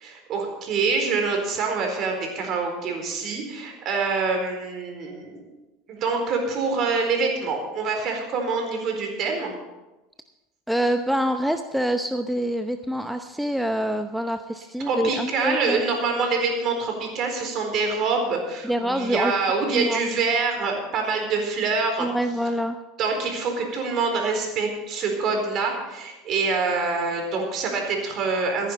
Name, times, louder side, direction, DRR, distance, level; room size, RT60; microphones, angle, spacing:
voice 1, 0.0-5.5 5.9-9.5 14.9-22.1 23.0-28.7, right 4 dB, 45° right, 3 dB, 4.3 m, -25 dB
voice 2, 10.7-15.8 18.6-19.3 19.7-20.0 22.0-22.8, right 1 dB, ahead, 7 dB, 0.8 m, -26 dB
15.0 x 10.0 x 5.7 m, 1.1 s
hypercardioid pair, 80°, 0 cm